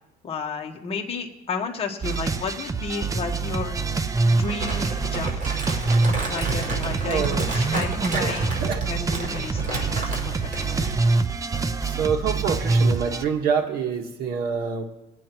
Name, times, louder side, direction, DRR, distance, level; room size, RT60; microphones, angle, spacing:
voice 1, 0.2-3.8 4.3-5.3 6.3-8.5 8.9-10.8, left 4 dB, 35° left, 1 dB, 1.3 m, -32 dB
sound 1, 2.0-13.2, right 3 dB, 20° right, 0.6 m, -25 dB
Crumpling crinkling, 4.4-11.1, right 3 dB, 50° right, 5.0 m, -31 dB
voice 2, 7.0-7.5 8.1-8.8 11.8-14.8, right 6 dB, 65° right, 2 dB, 1.6 m, -26 dB
21.0 x 8.9 x 3.0 m, 0.98 s
cardioid pair, 110°, 17 cm